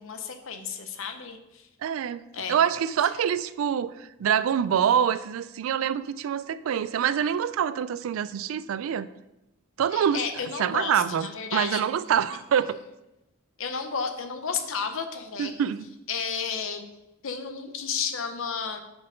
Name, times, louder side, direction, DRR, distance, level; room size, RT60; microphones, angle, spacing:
voice 1, 0.0-1.6 2.3-2.6 9.9-11.9 13.6-15.5 16.1-16.8 17.2-18.8, left 6 dB, 70° left, 7 dB, 0.7 m, -32 dB
voice 2, 1.8-2.2 2.5-9.1 9.8-10.2 10.6-12.8 15.4-15.9, right 8 dB, 70° right, 16 dB, 0.3 m, -25 dB
5.7 x 4.5 x 5.0 m, 0.93 s
head